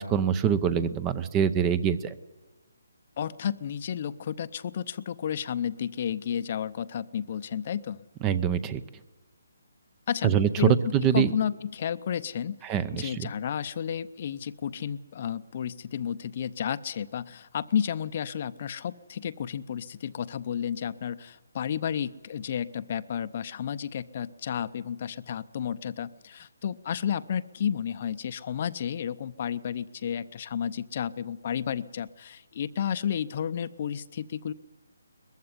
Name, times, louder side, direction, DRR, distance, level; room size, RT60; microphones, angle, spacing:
voice 1, 0.0-2.1 8.2-8.8 10.2-11.3 12.6-13.3, right 8 dB, 15° right, 16 dB, 0.6 m, -24 dB
voice 2, 3.2-8.0 10.1-12.6 12.9-34.5, left 8 dB, 35° left, 14 dB, 0.7 m, -32 dB
21.0 x 15.0 x 9.8 m, 1.1 s
hypercardioid pair, 165°, 0 cm